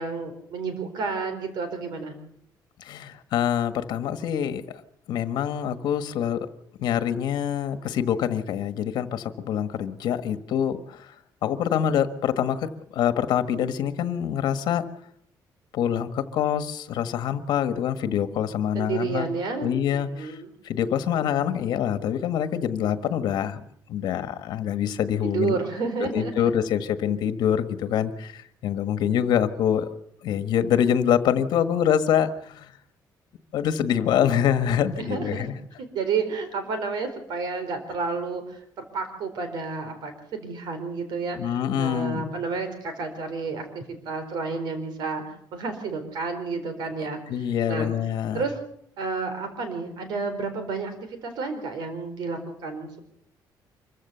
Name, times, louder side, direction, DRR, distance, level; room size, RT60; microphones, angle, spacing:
voice 1, 0.0-2.2 18.7-20.5 25.2-26.6 35.0-35.5 35.8-45.2 45.5-47.2 47.7-47.9 48.3-48.5 49.0-53.0, right 4 dB, 70° right, 9 dB, 4.2 m, -31 dB
voice 2, 2.8-4.6 5.1-6.5 6.8-11.1 11.4-14.8 15.7-19.3 19.6-20.4 20.6-23.6 23.9-25.6 26.0-29.9 30.2-32.7 33.5-35.5 41.4-42.3 47.3-48.4, left 9 dB, 70° left, 10 dB, 1.5 m, -25 dB
25.0 x 15.0 x 6.9 m, 0.70 s
cardioid pair, 165°, 8 cm